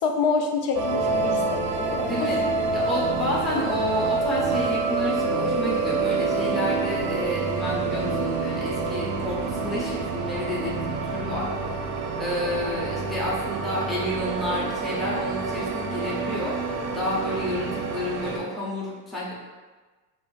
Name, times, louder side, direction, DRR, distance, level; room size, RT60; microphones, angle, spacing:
voice 1, 0.0-2.5, left 5 dB, 70° left, 2 dB, 0.7 m, -27 dB
sound 1, 0.7-18.4, right 4 dB, 40° right, 0.6 m, -27 dB
voice 2, 2.0-2.4 2.7-11.5 11.8-11.9 12.2-19.3, left 1 dB, ahead, -7 dB, 0.6 m, -30 dB
5.4 x 2.5 x 2.4 m, 1.3 s
supercardioid pair, 140°, 47 cm